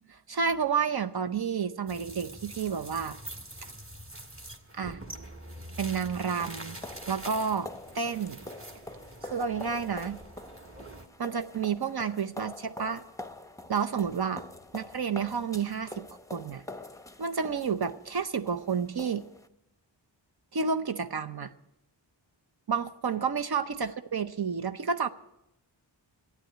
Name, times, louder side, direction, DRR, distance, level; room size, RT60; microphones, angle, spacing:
voice 1, 0.1-3.2 4.7-5.0 5.8-6.8 7.1-7.7 7.9-8.4 9.2-10.2 11.2-13.0 13.7-14.4 14.7-16.0 16.3-16.6 17.2-19.2 20.5-21.5 22.7-25.1, right 6 dB, 55° right, 8 dB, 0.7 m, -30 dB
sound 1, 1.9-11.1, right 1 dB, 30° right, 1.6 m, -45 dB
sound 2, 5.8-19.5, left 2 dB, 5° left, 0.7 m, -46 dB
12.5 x 9.1 x 9.0 m, 0.84 s
wide cardioid pair, 55°, 45 cm